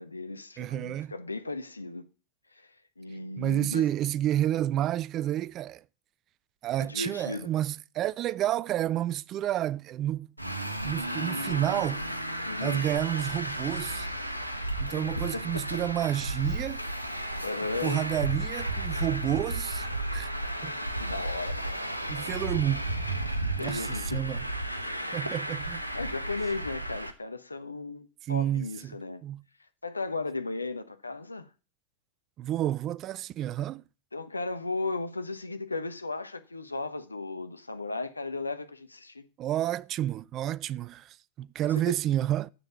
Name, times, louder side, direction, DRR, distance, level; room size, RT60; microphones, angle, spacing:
voice 1, 0.0-2.0 2.6-2.7 3.0-3.9 6.8-7.5 12.4-12.8 14.8-15.1 15.3-15.8 17.4-18.1 21.0-21.9 23.6-24.2 24.9-25.2 25.9-29.2 29.8-31.5 34.1-39.3 41.6-42.0, left 3 dB, 80° left, 1.0 m, -36 dB
voice 2, 0.6-1.1 3.4-5.8 6.6-10.3 10.8-12.0 12.6-14.1 14.8-16.8 17.8-19.9 20.1-20.3 20.6-20.8 22.1-22.9 23.6-24.4 25.1-25.8 28.3-29.0 29.2-29.4 32.4-33.8 39.4-42.5, right 12 dB, 35° right, 0.4 m, -30 dB
Traffic noise roadway noise, 10.4-27.1, right 1 dB, 90° right, 1.1 m, -33 dB
7.8 x 7.1 x 8.2 m
figure-of-eight pair, 90°, 0 cm